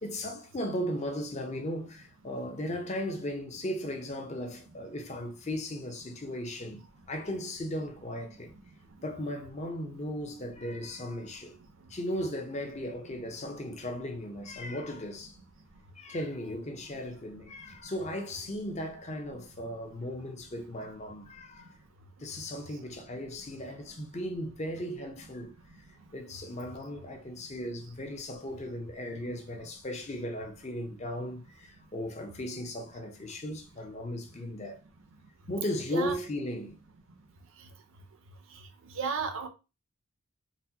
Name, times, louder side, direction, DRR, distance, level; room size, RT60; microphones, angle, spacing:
voice 1, 0.0-6.8 7.1-8.6 9.0-11.5 11.9-15.4 16.0-21.8 22.2-25.5 25.9-34.8 35.5-36.8, left 1 dB, 30° left, 0.6 m, -36 dB
voice 2, 39.0-39.5, right 5 dB, 60° right, 0.5 m, -32 dB
4.0 x 2.1 x 2.7 m
head